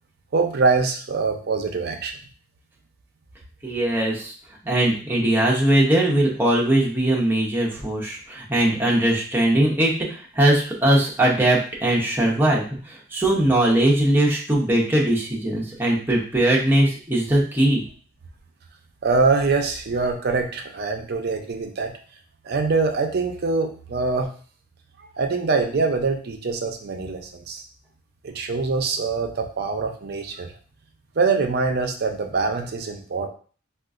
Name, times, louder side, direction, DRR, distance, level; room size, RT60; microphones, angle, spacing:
voice 1, 0.3-2.2 19.0-21.9 22.4-24.3 25.0-27.6 28.2-30.5 31.2-33.3, right 4 dB, 50° right, 4 dB, 0.5 m, -24 dB
voice 2, 3.6-4.3 4.6-17.8, right 1 dB, 10° right, -3 dB, 0.7 m, -20 dB
3.7 x 2.4 x 2.4 m, 0.41 s
head